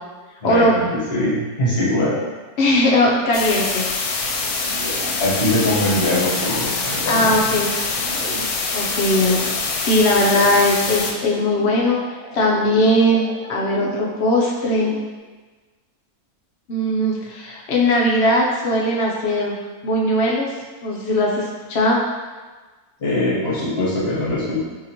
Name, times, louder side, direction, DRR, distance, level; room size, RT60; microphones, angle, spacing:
voice 1, 0.4-2.2 5.2-7.4 23.0-24.6, left 1 dB, 45° left, -8 dB, 1.2 m, -22 dB
voice 2, 2.6-3.8 7.1-7.8 8.7-9.4 9.8-12.0 12.3-14.9 16.7-19.5 19.8-20.5 20.8-22.0, left 1 dB, 65° left, -3 dB, 0.7 m, -19 dB
sound 1, 3.3-11.1, left 4 dB, 80° left, 1.1 m, -24 dB
sound 2, 4.3-15.2, right 2 dB, 60° right, 0.7 m, -37 dB
2.9 x 2.8 x 4.0 m, 1.3 s
omnidirectional pair, 1.6 m